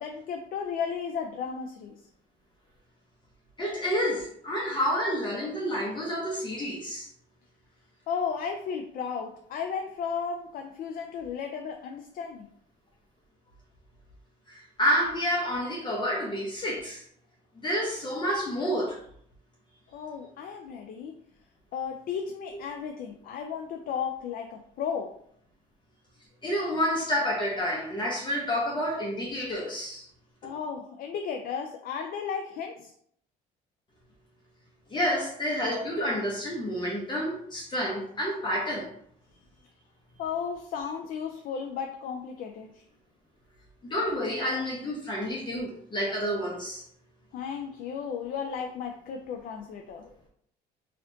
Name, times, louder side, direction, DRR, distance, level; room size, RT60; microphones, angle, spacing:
voice 1, 0.0-2.0 8.1-12.5 19.9-21.1 21.7-25.1 30.4-32.9 40.2-42.8 47.3-50.1, left 6 dB, 60° left, 3 dB, 0.4 m, -34 dB
voice 2, 3.6-7.1 14.5-17.0 17.6-18.9 26.4-30.0 34.9-38.9 43.9-46.8, equal, 25° left, -4 dB, 0.8 m, -29 dB
4.3 x 2.4 x 2.7 m, 0.66 s
cardioid pair, 110°, 17 cm